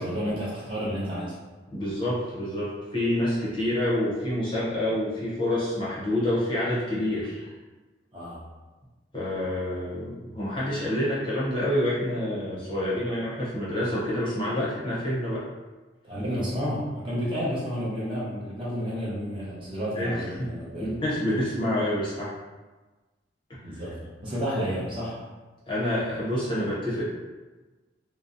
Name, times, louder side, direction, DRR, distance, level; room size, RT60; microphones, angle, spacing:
voice 1, 0.0-1.3 8.1-8.4 16.0-20.9 23.6-25.2, equal, 25° right, -8 dB, 0.6 m, -31 dB
voice 2, 1.7-7.5 9.1-15.4 19.9-20.2 20.8-22.3 23.5-23.8 25.7-27.0, left 1 dB, 25° left, -8 dB, 0.6 m, -27 dB
2.6 x 2.0 x 2.5 m, 1.2 s
head